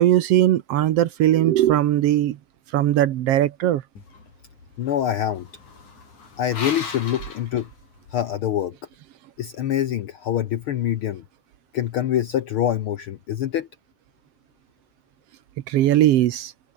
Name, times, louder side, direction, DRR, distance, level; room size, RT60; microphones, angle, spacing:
voice 1, 0.0-2.4 2.7-3.8 15.7-16.5, right 13 dB, 65° right, 1.7 m, -19 dB
sound 1, 4.0-8.3, left 4 dB, 90° left, 6.8 m, -38 dB
voice 2, 4.8-5.5 6.4-7.7 8.1-8.8 9.4-11.2 11.7-13.7, left 11 dB, 70° left, 1.3 m, -25 dB
omnidirectional pair, 3.3 m